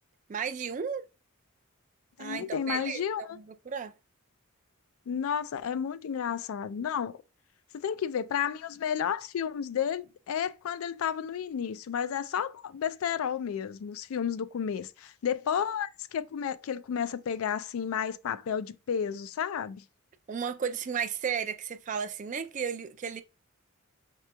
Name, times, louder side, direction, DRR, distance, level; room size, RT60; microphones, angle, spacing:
voice 1, 0.3-1.0 2.2-3.9 20.3-23.2, right 7 dB, 35° right, 0.3 m, -34 dB
voice 2, 2.2-3.4 5.1-7.2 7.7-19.8, left 8 dB, 80° left, 0.3 m, -32 dB
6.6 x 3.0 x 2.2 m
head